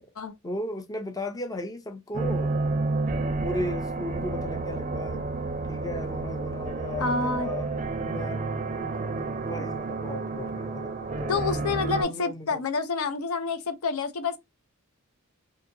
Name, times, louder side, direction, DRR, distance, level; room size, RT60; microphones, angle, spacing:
voice 1, 0.4-2.6 3.4-5.3 5.7-7.7 8.0-8.5 8.8-10.9 11.2-12.6, left 1 dB, 15° left, 0.5 m, -36 dB
sound 1, 2.1-12.0, right 3 dB, 35° right, 0.4 m, -30 dB
voice 2, 7.0-7.5 9.6-9.7 11.3-14.4, left 4 dB, 70° left, 0.5 m, -28 dB
2.7 x 2.6 x 2.6 m
head